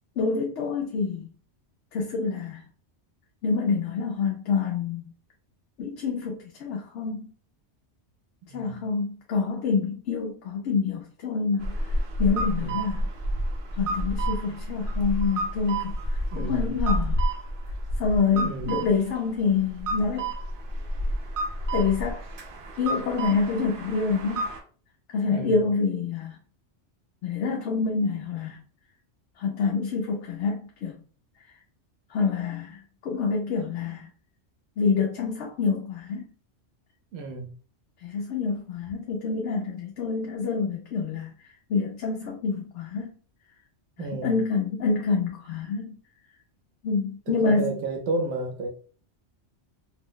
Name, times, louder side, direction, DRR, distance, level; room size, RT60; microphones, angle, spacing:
voice 1, 0.2-1.3 1.9-2.6 3.4-5.0 5.8-7.3 8.5-11.7 12.2-13.0 13.8-15.9 16.4-17.2 18.0-20.3 21.7-22.2 22.8-24.5 25.1-26.4 27.2-28.6 29.4-30.9 32.1-34.1 34.8-36.2 38.0-41.3 41.7-43.1 44.0-46.0 46.8-47.8, left 5 dB, 80° left, 0.9 m, -27 dB
voice 2, 8.5-8.8 12.6-12.9 16.3-16.7 18.4-18.9 25.3-25.6 37.1-37.5 44.0-44.3 47.3-48.7, right 2 dB, 80° right, 0.9 m, -32 dB
sound 1, 11.6-24.6, right 1 dB, 55° right, 0.7 m, -30 dB
2.6 x 2.0 x 3.7 m
omnidirectional pair, 1.2 m